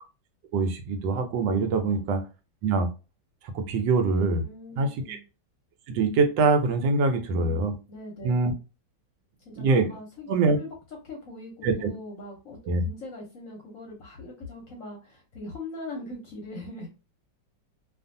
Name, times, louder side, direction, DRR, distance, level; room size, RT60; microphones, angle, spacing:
voice 1, 0.5-2.2 2.6-2.9 3.4-4.4 4.8-5.2 5.9-7.7 8.2-8.5 9.6-9.9 10.3-10.6 11.6-11.9 12.7-12.8, right 4 dB, 80° right, 7 dB, 1.3 m, -24 dB
voice 2, 4.4-5.2 7.2-7.6 7.9-8.4 9.4-10.3 10.6-10.7 11.0-16.9, left 2 dB, 60° left, 0 dB, 0.9 m, -41 dB
2.7 x 2.5 x 2.5 m, 0.31 s
omnidirectional pair, 2.0 m